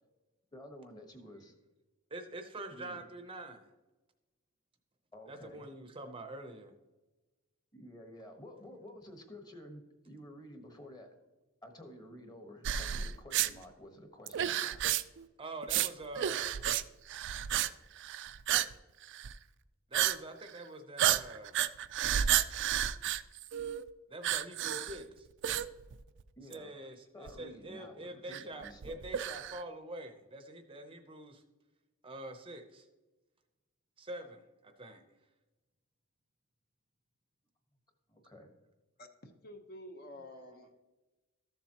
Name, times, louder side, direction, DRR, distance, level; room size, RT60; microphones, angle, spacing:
voice 1, 0.5-1.5 2.7-3.0 5.1-5.7 7.7-11.1 11.6-14.8 26.4-26.7 27.1-29.0 38.1-38.5, equal, 20° left, 5 dB, 1.2 m, -51 dB
voice 2, 2.1-3.7 5.3-6.7 15.4-16.5 19.9-21.6 24.1-25.3 26.5-31.4 32.0-32.9 34.0-35.0 40.3-40.7, right 1 dB, 25° right, 6 dB, 0.7 m, -45 dB
sound 1, 12.6-13.5 14.3-15.2 15.6-15.9 16.1-16.8 17.1-17.7 18.0-18.7 19.0-19.3 19.9-20.2 20.5-20.6 21.0-23.8 24.2-25.0 25.4-26.2 26.5-26.6 27.3-27.4 28.3-29.6, right 11 dB, 55° right, 0.4 m, -31 dB
voice 3, 39.0-40.7, left 1 dB, 45° left, 5 dB, 0.9 m, -50 dB
13.5 x 7.3 x 2.9 m, 1.1 s
head